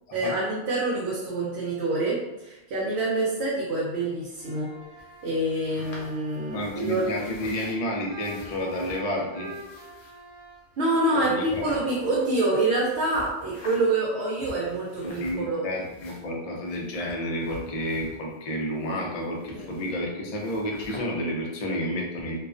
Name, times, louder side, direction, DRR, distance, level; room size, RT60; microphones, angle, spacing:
voice 1, 0.1-4.7 5.2-7.0 10.8-15.6 19.5-19.7, right 2 dB, 70° right, -5 dB, 0.8 m, -26 dB
sound 1, 4.3-14.0, right 2 dB, 40° right, 1.0 m, -46 dB
sound 2, 5.0-7.8 8.2-9.0 9.4-10.2 10.9-11.0 11.4-12.6 12.9-14.0 14.3-15.6 15.8-18.4 18.7-20.0 20.3-21.0, left 2 dB, 70° left, 0.9 m, -46 dB
voice 2, 6.5-9.5 11.1-11.6 15.0-22.4, equal, 50° left, -1 dB, 0.4 m, -30 dB
2.3 x 2.1 x 2.4 m, 0.98 s
omnidirectional pair, 1.1 m